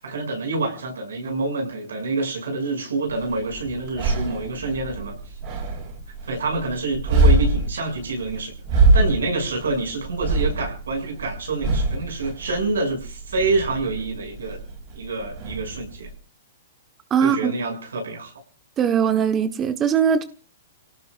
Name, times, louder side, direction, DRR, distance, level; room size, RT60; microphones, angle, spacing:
voice 1, 0.0-5.2 6.2-14.6 14.9-16.1 17.2-18.3, right 3 dB, 85° right, 7.2 m, -27 dB
sound 1, 3.1-16.1, right 2 dB, 45° right, 6.1 m, -24 dB
voice 2, 17.1-17.6 18.8-20.2, right 7 dB, 25° right, 1.3 m, -20 dB
29.5 x 18.0 x 2.6 m
hypercardioid pair, 125°, 0 cm